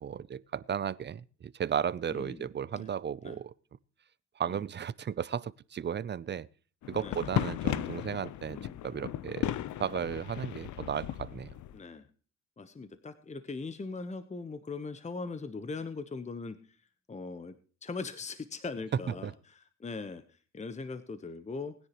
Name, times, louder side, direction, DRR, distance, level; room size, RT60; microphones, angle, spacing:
voice 1, 0.0-3.5 4.4-6.5 6.9-8.6 8.8-9.5 9.8-11.5 18.9-19.3, right 8 dB, 35° right, 0.6 m, -34 dB
voice 2, 2.1-2.5 2.7-2.9 3.2-3.4 4.5-4.6 6.9-7.3 8.5-8.8 9.4-9.6 11.7-12.0 12.6-16.6 17.1-20.2 20.5-21.7, left 4 dB, 25° left, 1.1 m, -40 dB
sound 1, 6.8-11.8, left 12 dB, 75° left, 0.8 m, -36 dB
20.5 x 10.0 x 3.0 m
cardioid pair, 90°, 30 cm